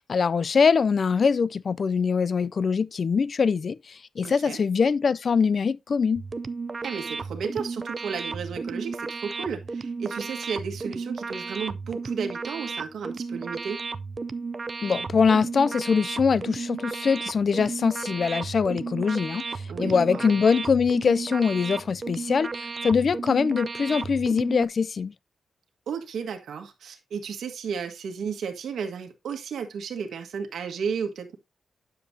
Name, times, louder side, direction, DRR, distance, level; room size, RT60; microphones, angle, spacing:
voice 1, 0.0-6.2 14.8-25.1, left 5 dB, 45° left, 0.4 m, -23 dB
voice 2, 4.2-4.6 6.8-13.8 19.7-20.4 25.9-31.4, right 6 dB, 85° right, 1.6 m, -33 dB
sound 1, 6.2-24.7, right 4 dB, 30° right, 0.5 m, -34 dB
10.5 x 7.0 x 2.7 m
wide cardioid pair, 150°, 0 cm